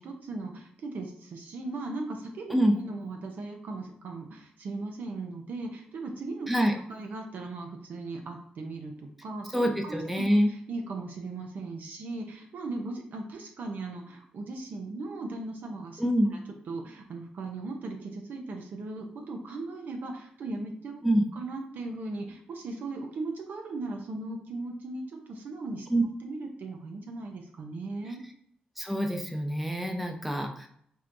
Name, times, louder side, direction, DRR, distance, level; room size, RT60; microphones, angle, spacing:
voice 1, 0.0-6.5 6.9-16.0 16.3-16.4 16.7-21.0 21.3-25.9 26.2-28.2, right 2 dB, 70° right, 3 dB, 0.6 m, -38 dB
voice 2, 9.5-10.5 16.0-16.3 21.0-21.3 25.9-26.0 28.8-30.7, equal, ahead, 3 dB, 0.6 m, -25 dB
4.4 x 2.2 x 2.6 m, 0.65 s
cardioid pair, 60°, 3 cm